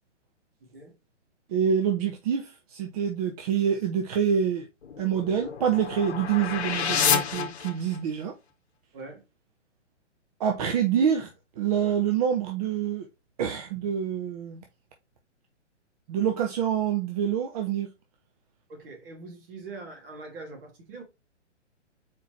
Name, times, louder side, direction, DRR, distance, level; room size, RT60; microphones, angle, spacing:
voice 1, 0.6-1.0 8.9-9.2 18.7-21.0, right 3 dB, 50° right, 2.2 m, -43 dB
voice 2, 1.5-4.7 5.0-8.3 10.4-11.3 11.6-13.1 13.4-14.6 16.1-17.9, right 8 dB, 35° right, 0.7 m, -26 dB
sound 1, 4.8-8.2, left 7 dB, 65° left, 0.9 m, -29 dB
4.3 x 3.9 x 3.0 m
figure-of-eight pair, 125°, 36 cm